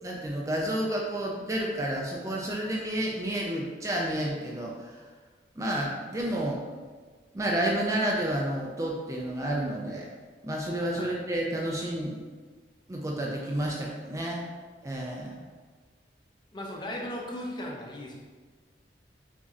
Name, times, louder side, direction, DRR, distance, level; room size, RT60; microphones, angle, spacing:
voice 1, 0.0-5.0 5.6-6.6 7.3-10.1 10.4-12.2 12.9-14.5 14.8-15.4, right 1 dB, 20° right, -2 dB, 0.4 m, -30 dB
voice 2, 16.5-18.1, left 1 dB, 25° left, -2 dB, 0.6 m, -37 dB
6.9 x 2.6 x 2.5 m, 1.4 s
head